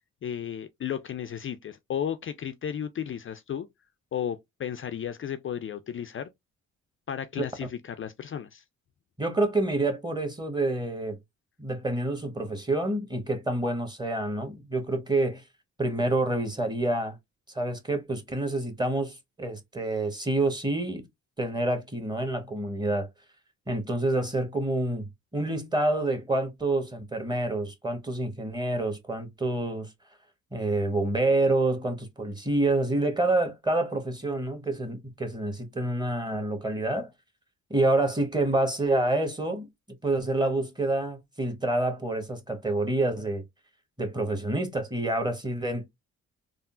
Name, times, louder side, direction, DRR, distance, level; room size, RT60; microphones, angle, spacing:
voice 1, 0.2-3.7 4.1-6.3 7.1-8.6, left 9 dB, 40° left, 0.4 m, -34 dB
voice 2, 9.2-11.2 11.6-15.4 15.8-17.2 17.5-21.0 21.4-23.1 23.7-29.9 30.5-37.1 37.7-39.7 40.0-43.4 44.0-45.9, right 2 dB, 10° right, 1.1 m, -27 dB
3.6 x 2.0 x 2.4 m
supercardioid pair, 50°, 35 cm